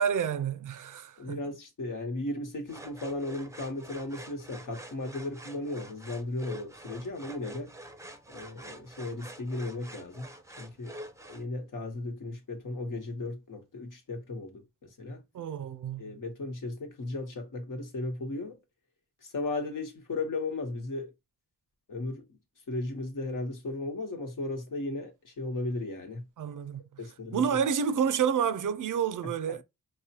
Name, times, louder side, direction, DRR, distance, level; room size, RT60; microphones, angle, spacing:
voice 1, 0.0-1.4 15.3-16.1 26.4-26.8 27.3-29.6, right 7 dB, 65° right, 0.5 m, -29 dB
voice 2, 1.2-7.7 8.3-10.3 10.6-11.0 11.2-15.2 16.0-18.6 19.2-21.1 21.9-22.3 22.7-26.2 27.0-27.4 29.2-29.6, left 2 dB, 70° left, 1.2 m, -36 dB
sound 1, 2.7-11.4, right 1 dB, 10° right, 0.5 m, -47 dB
4.7 x 2.1 x 2.8 m
cardioid pair, 80°, 33 cm